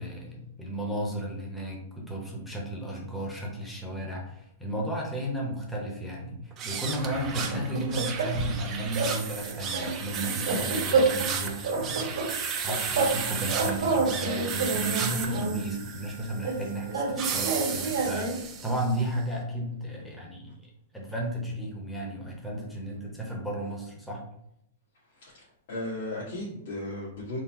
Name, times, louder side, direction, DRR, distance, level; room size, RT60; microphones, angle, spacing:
voice 1, 0.0-12.2 12.6-20.6 20.9-24.2, right 1 dB, 5° left, -2 dB, 0.8 m, -34 dB
sound 1, 6.5-19.0, right 6 dB, 25° right, 0.4 m, -34 dB
sound 2, 7.3-8.6 9.0-9.2 9.4-11.3 11.6-13.2 13.4-15.6 16.4-18.4, right 3 dB, 90° right, 1.3 m, -28 dB
voice 2, 25.1-27.4, left 1 dB, 65° left, -8 dB, 1.3 m, -36 dB
3.9 x 2.0 x 4.2 m, 0.76 s
supercardioid pair, 160°, 0 cm